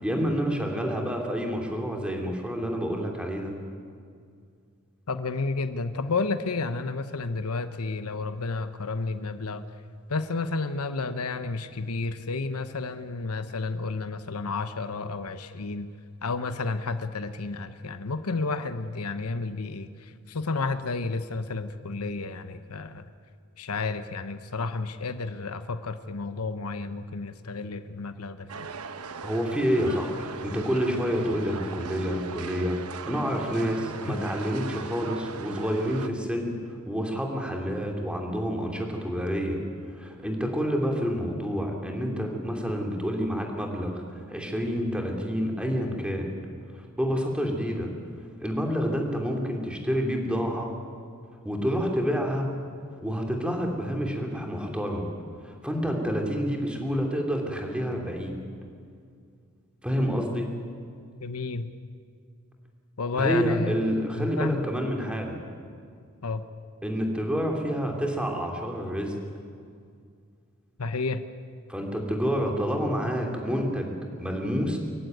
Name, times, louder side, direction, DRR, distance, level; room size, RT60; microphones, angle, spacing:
voice 1, 0.0-3.5 29.2-32.8 33.1-36.6 36.9-39.6 39.9-46.3 46.7-47.9 48.4-50.7 51.4-52.5 53.0-55.1 55.4-58.4 59.8-60.5 63.1-65.4 66.8-69.1 71.7-74.8, equal, 5° right, 1 dB, 2.9 m, -28 dB
voice 2, 5.1-9.6 10.1-15.9 16.2-23.1 23.6-28.7 61.2-61.7 63.0-63.7 64.2-64.6 66.2-66.4 70.8-71.2, left 3 dB, 85° left, 10 dB, 1.0 m, -31 dB
sound 1, 28.5-36.1, right 5 dB, 85° right, 1.0 m, -39 dB
24.0 x 14.5 x 9.4 m, 2.2 s
head